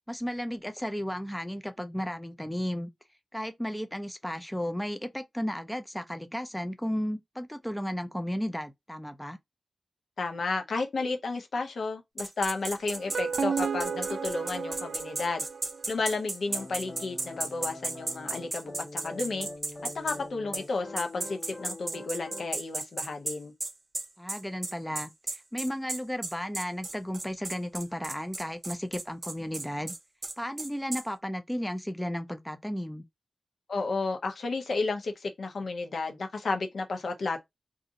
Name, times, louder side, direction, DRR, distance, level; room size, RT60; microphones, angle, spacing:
voice 1, 0.1-2.9 3.3-9.4 24.2-29.9 30.4-33.0, equal, 5° left, 0.3 m, -34 dB
voice 2, 10.2-15.4 15.9-19.5 19.9-23.5 33.7-37.4, left 3 dB, 75° left, 0.7 m, -32 dB
sound 1, 12.2-20.2 20.5-20.6 21.0-31.0, right 2 dB, 35° right, 0.6 m, -35 dB
sound 2, 12.9-16.1, right 5 dB, 85° right, 0.4 m, -33 dB
sound 3, 16.5-22.5, left 2 dB, 40° left, 0.7 m, -43 dB
2.5 x 2.4 x 3.8 m
wide cardioid pair, 130°, 0 cm